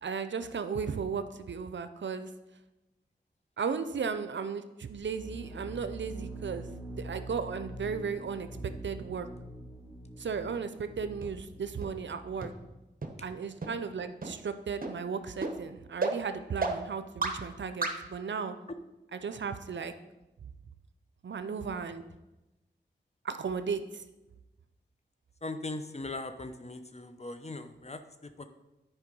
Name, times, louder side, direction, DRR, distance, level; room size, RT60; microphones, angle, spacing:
voice 1, 0.0-2.3 3.6-9.3 10.2-12.5 13.2-18.5 19.1-19.9 21.2-22.0 23.2-24.0, right 6 dB, 70° right, 10 dB, 0.6 m, -35 dB
sound 1, 5.0-12.6, right 1 dB, ahead, 1.6 m, -44 dB
sound 2, 11.2-11.3 11.8-11.9 12.4-12.5 13.0-13.1 13.6-13.7 14.2-14.3 14.8-14.9 15.4-15.5 16.0-16.1 16.6-16.7 17.2-17.3 17.8-17.9, right 3 dB, 45° right, 1.1 m, -30 dB
voice 2, 25.4-28.5, left 2 dB, 35° left, 9 dB, 0.8 m, -40 dB
9.7 x 4.7 x 5.3 m, 1.0 s
cardioid pair, 40°, 20 cm